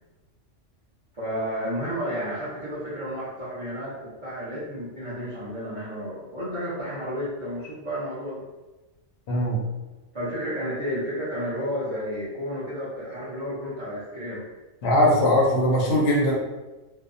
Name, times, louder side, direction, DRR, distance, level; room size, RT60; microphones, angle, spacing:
voice 1, 1.1-8.5 10.1-14.5, equal, 30° right, -10 dB, 0.6 m, -32 dB
voice 2, 9.3-9.6 14.8-16.3, left 1 dB, 65° left, -3 dB, 0.8 m, -20 dB
2.7 x 2.1 x 2.5 m, 1.1 s
omnidirectional pair, 1.3 m